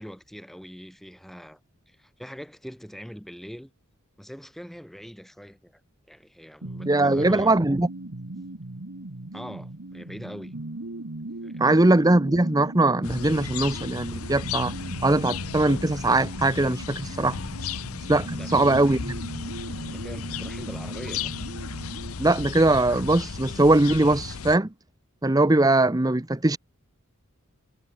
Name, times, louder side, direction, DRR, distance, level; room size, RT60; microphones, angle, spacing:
voice 1, 0.0-1.6 1.9-3.7 4.2-5.7 6.1-7.6 9.3-10.5 11.4-11.8 18.3-18.5 19.9-21.3, equal, ahead, 2.8 m, -42 dB
sound 1, 6.6-22.1, right 2 dB, 70° right, 1.5 m, -38 dB
voice 2, 6.9-7.9 11.6-14.7 15.0-17.4 18.1-19.2 22.2-24.7 25.2-26.6, right 2 dB, 15° right, 0.7 m, -21 dB
sound 2, 13.0-24.6, left 6 dB, 90° left, 0.8 m, -35 dB
head